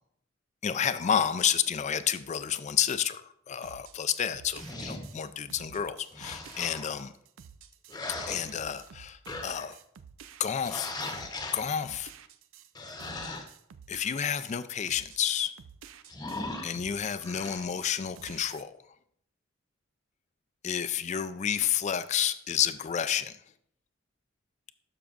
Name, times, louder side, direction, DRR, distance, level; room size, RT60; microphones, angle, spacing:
voice 1, 0.6-7.1 8.3-9.8 10.4-10.9 11.5-12.1 13.9-15.5 16.6-18.7 20.6-23.4, left 8 dB, 35° left, 14 dB, 0.4 m, -30 dB
sound 1, 3.6-16.5 16.7-18.6, right 7 dB, 90° right, 0.4 m, -51 dB
sound 2, 4.5-5.1 6.1-6.9 7.9-8.9 9.3-9.7 10.6-11.7 12.7-13.4 16.1-16.7 17.2-17.5, left 2 dB, 20° left, 0.9 m, -38 dB
12.0 x 5.8 x 2.5 m, 0.70 s
head